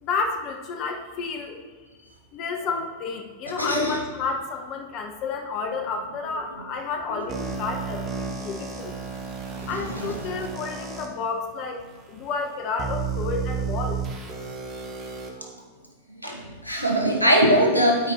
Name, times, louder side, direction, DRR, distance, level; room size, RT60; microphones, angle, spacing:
voice 1, 0.0-1.6 2.3-9.0 9.6-11.8 12.1-14.0, left 4 dB, 40° left, 3 dB, 0.9 m, -30 dB
voice 2, 3.5-4.0 9.5-10.1 16.2-18.1, equal, 90° left, 1 dB, 1.0 m, -22 dB
sound 1, 7.3-11.1 11.8-11.9 12.8-15.3, right 6 dB, 35° right, 1.1 m, -32 dB
12.5 x 4.9 x 3.2 m, 1.5 s
figure-of-eight pair, 90°, 0 cm